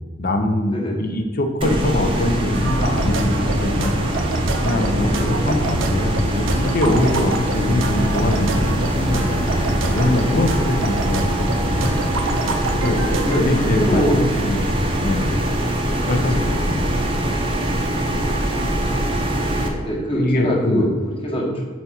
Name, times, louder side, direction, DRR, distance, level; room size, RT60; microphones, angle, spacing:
voice 1, 0.2-3.9 4.6-11.9 12.7-13.0 13.4-15.3 16.1-16.8 20.2-20.9, left 1 dB, 45° left, 5 dB, 0.6 m, -23 dB
voice 2, 0.7-1.1 5.2-5.4 10.3-10.7 12.9-14.2 14.8-15.1 16.0-16.3 19.6-21.6, equal, 25° left, -2 dB, 1.2 m, -24 dB
sound 1, 1.6-19.7, right 1 dB, 25° right, 0.7 m, -22 dB
sound 2, 2.5-13.4, right 2 dB, 70° right, 0.6 m, -27 dB
4.6 x 4.1 x 5.7 m, 1.4 s
head